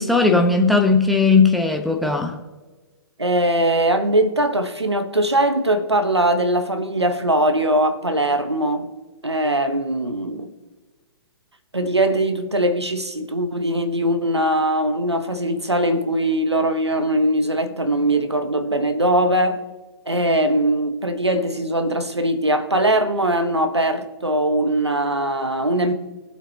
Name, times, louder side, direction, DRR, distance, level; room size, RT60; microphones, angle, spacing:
voice 1, 0.0-2.3, left 4 dB, ahead, 1.1 m, -17 dB
voice 2, 3.2-8.9 9.2-10.5 11.7-19.6 20.1-25.9, right 1 dB, 90° right, 1.2 m, -21 dB
21.5 x 7.9 x 2.9 m
figure-of-eight pair, 120°, 14 cm